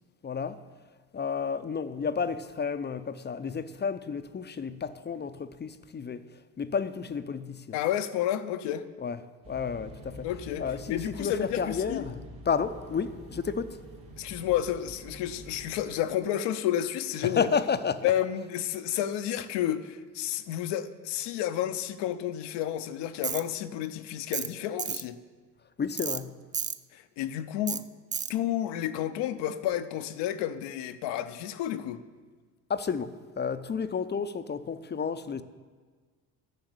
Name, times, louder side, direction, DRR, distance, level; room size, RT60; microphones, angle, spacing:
voice 1, 0.2-0.6 1.1-6.2 6.6-7.8 9.0-9.2 9.5-10.3 10.6-13.8 17.2-18.1 25.8-26.4 32.7-35.4, left 6 dB, 25° left, 0.6 m, -31 dB
voice 2, 7.7-8.9 10.2-12.1 14.2-17.5 18.0-25.2 26.9-27.8 28.3-32.0, left 11 dB, 65° left, 0.8 m, -31 dB
sound 1, 9.4-15.8, equal, 85° right, 2.9 m, -46 dB
Tools, 23.2-23.4 24.3-24.5 24.8-25.0 26.0-26.2 26.5-26.8 27.7-27.8 28.1-28.3, right 7 dB, 20° right, 0.3 m, -31 dB
11.0 x 5.8 x 8.0 m
hypercardioid pair, 65°, 44 cm